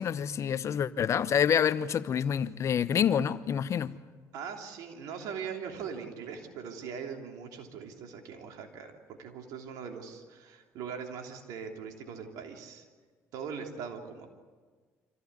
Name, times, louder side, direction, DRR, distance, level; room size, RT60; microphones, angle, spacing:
voice 1, 0.0-3.9, left 8 dB, 50° left, 0.9 m, -27 dB
voice 2, 4.3-12.8 13.3-14.3, right 6 dB, 75° right, 3.2 m, -41 dB
25.0 x 15.0 x 9.6 m
supercardioid pair, 70°, 6 cm